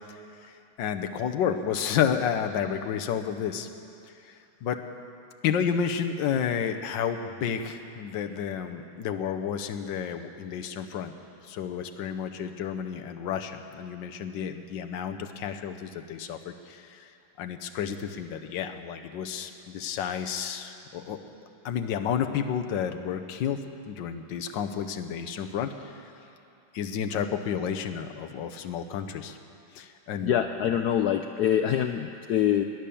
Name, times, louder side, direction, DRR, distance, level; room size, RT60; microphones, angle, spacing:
voice 1, 0.8-3.7 4.2-4.3 4.6-4.8 5.4-11.1 11.4-17.1 17.4-21.2 21.6-23.6 23.9-25.9 26.7-29.4 29.7-30.3, left 8 dB, 70° left, 6 dB, 1.4 m, -31 dB
voice 2, 30.2-32.6, left 10 dB, 85° left, 7 dB, 0.8 m, -25 dB
18.5 x 10.5 x 7.0 m, 2.6 s
omnidirectional pair, 2.2 m